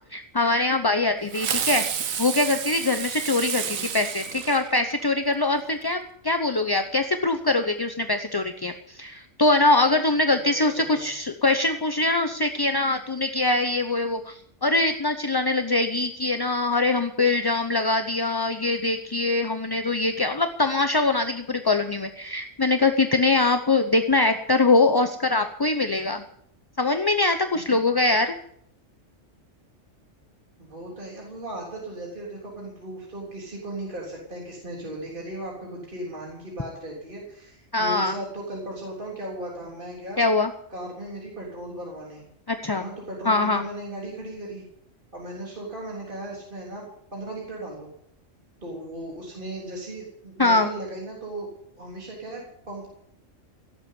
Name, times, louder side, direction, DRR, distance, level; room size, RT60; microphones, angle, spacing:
voice 1, 0.1-1.8 2.2-26.2 26.8-28.4 37.7-38.2 40.2-40.5 42.5-42.9 43.3-43.6 50.4-50.7, left 2 dB, 25° left, 7 dB, 0.6 m, -23 dB
Fireworks, 1.3-5.2, right 8 dB, 90° right, 1.5 m, -30 dB
voice 2, 3.6-3.9 10.5-11.1 30.6-40.2 40.7-42.2 42.7-44.6 45.1-46.8 47.1-47.9 48.6-51.5 51.8-52.9, right 1 dB, 40° right, -3 dB, 3.8 m, -37 dB
17.0 x 8.2 x 9.5 m, 0.72 s
omnidirectional pair, 1.4 m